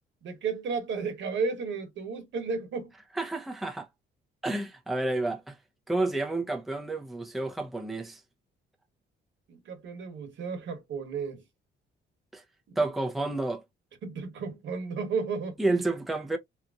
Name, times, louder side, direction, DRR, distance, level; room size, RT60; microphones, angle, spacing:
voice 1, 0.2-2.9 9.5-11.4 12.7-12.8 14.0-15.8, right 5 dB, 70° right, 1.1 m, -33 dB
voice 2, 3.1-3.9 4.4-5.6 5.9-8.2 12.3-12.4 12.8-13.6 15.6-16.4, right 2 dB, ahead, 0.6 m, -30 dB
2.8 x 2.5 x 2.3 m
cardioid pair, 90°, 20 cm